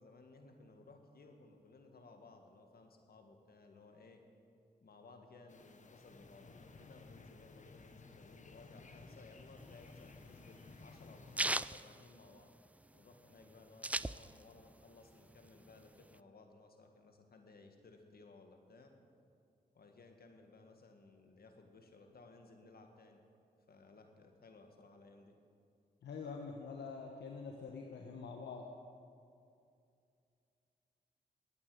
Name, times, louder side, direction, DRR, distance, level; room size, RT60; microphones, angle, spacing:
voice 1, 0.0-4.2 4.8-12.5 12.9-18.9 19.7-23.2 23.7-25.4, left 3 dB, 60° left, 4 dB, 1.8 m, -59 dB
sound 1, 5.5-11.6, left 3 dB, 45° left, 1.1 m, -56 dB
sound 2, 9.6-12.8 13.1-13.2 13.4-14.7 15.0-16.2, right 1 dB, 10° right, 0.3 m, -38 dB
voice 2, 26.0-28.6, left 5 dB, 75° left, 2 dB, 1.0 m, -45 dB
21.5 x 8.7 x 5.0 m, 2.5 s
supercardioid pair, 50°, 18 cm